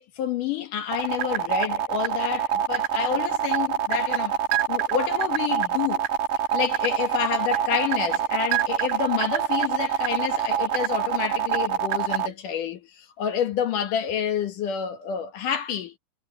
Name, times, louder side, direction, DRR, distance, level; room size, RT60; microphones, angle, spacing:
voice 1, 0.0-4.4 4.7-6.0 6.5-16.0, left 9 dB, 60° left, 2.6 m, -28 dB
sound 1, 0.9-12.3, right 10 dB, 80° right, 3.5 m, -24 dB
omnidirectional pair, 4.8 m